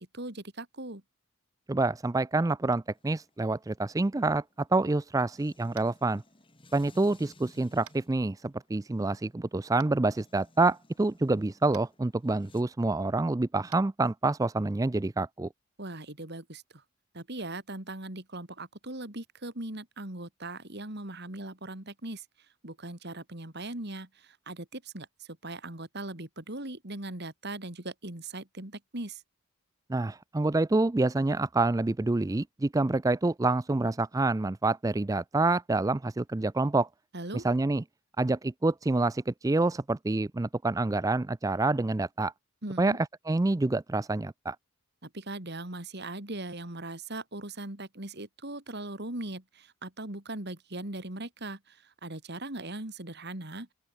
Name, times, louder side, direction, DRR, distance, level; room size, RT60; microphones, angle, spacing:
voice 1, 0.1-1.0 15.8-16.8 17.1-22.2 22.6-29.2 37.1-37.5 42.6-43.0 45.0-53.7, right 2 dB, 50° right, 2.9 m, -39 dB
voice 2, 1.7-4.4 4.7-6.2 6.7-15.5 29.9-36.9 37.3-37.8 38.2-42.3 42.8-43.0 43.3-44.6, right 2 dB, 15° right, 0.3 m, -27 dB
sound 1, 2.9-12.6, left 1 dB, 25° left, 5.1 m, -59 dB
Tap, 5.7-6.0 7.8-8.0 9.8-9.9 11.7-11.9 13.7-13.8, right 10 dB, 85° right, 2.7 m, -50 dB
open air
head